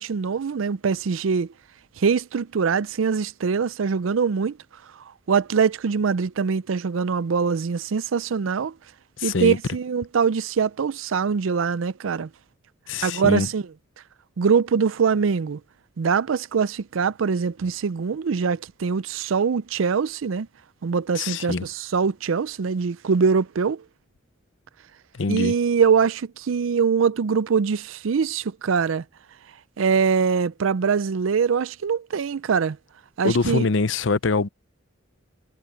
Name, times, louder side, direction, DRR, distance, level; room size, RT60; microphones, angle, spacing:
voice 1, 0.0-1.5 2.0-4.6 5.3-8.7 9.2-12.3 13.0-13.6 14.4-15.6 16.0-20.5 20.8-23.8 25.3-29.0 29.8-32.8 33.2-33.7, right 6 dB, 80° right, 0.5 m, -23 dB
voice 2, 9.2-9.6 12.9-13.5 21.1-21.7 25.1-25.5 33.2-34.5, left 3 dB, 70° left, 0.7 m, -24 dB
head